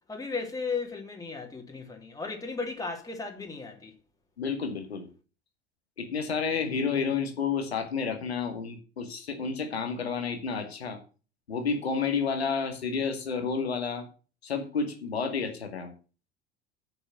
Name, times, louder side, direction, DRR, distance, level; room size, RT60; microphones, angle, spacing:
voice 1, 0.1-3.9, left 4 dB, 10° left, 2.8 m, -35 dB
voice 2, 4.4-5.1 6.0-11.0 11.5-14.0 14.4-15.9, left 5 dB, 75° left, 2.2 m, -30 dB
8.1 x 7.0 x 7.7 m
figure-of-eight pair, 70°, 32 cm